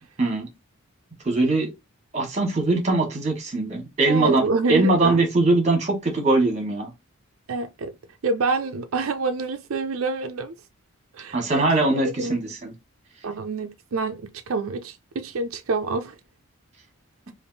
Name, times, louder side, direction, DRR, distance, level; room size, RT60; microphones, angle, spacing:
voice 1, 1.2-1.7 2.1-4.4 4.7-6.9 11.3-12.7, right 2 dB, 35° right, 1.4 m, -21 dB
voice 2, 4.1-5.2 7.5-7.9 8.2-10.6 11.1-11.9 12.2-12.4 13.2-16.2, right 3 dB, 75° right, 0.5 m, -27 dB
3.4 x 2.6 x 3.9 m
head